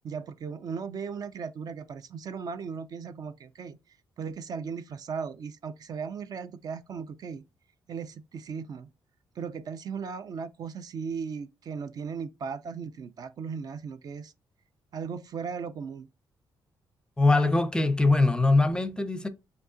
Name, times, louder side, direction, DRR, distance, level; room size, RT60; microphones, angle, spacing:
voice 1, 0.0-3.8 4.2-7.4 7.9-8.9 9.4-14.3 14.9-16.1, right 6 dB, 50° right, 0.4 m, -37 dB
voice 2, 17.2-19.3, left 2 dB, 10° left, 0.5 m, -22 dB
5.2 x 2.6 x 3.7 m
cardioid pair, 125°, 8 cm